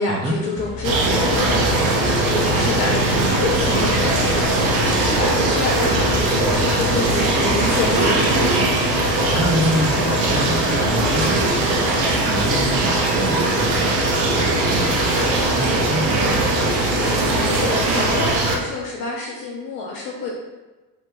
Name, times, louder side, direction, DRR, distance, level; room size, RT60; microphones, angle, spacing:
voice 1, 0.0-8.1 17.3-20.4, left 3 dB, 75° left, -4 dB, 0.7 m, -28 dB
sound 1, 0.6-8.0, left 3 dB, 40° left, 0.9 m, -33 dB
sound 2, 0.8-18.6, right 2 dB, 60° right, 0.8 m, -19 dB
voice 2, 9.3-11.8 12.3-15.1 15.4-16.8, right 1 dB, 15° right, -2 dB, 0.4 m, -27 dB
3.2 x 2.1 x 3.1 m, 1.2 s
hypercardioid pair, 65°, 50 cm